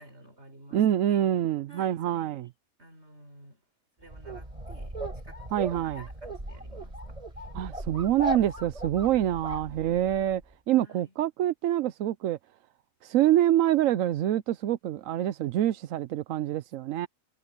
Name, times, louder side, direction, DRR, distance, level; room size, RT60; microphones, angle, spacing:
voice 1, 0.0-1.3 1.7-2.3 2.8-3.6 4.0-7.2 9.7-10.1 10.8-11.1, right 1 dB, 55° right, 4.7 m, -53 dB
voice 2, 0.7-2.5 5.5-6.0 7.5-10.4 10.7-12.4 13.0-17.1, right 12 dB, 90° right, 1.0 m, -26 dB
sound 1, 4.1-10.3, right 1 dB, 25° right, 4.7 m, -37 dB
omnidirectional pair, 1.3 m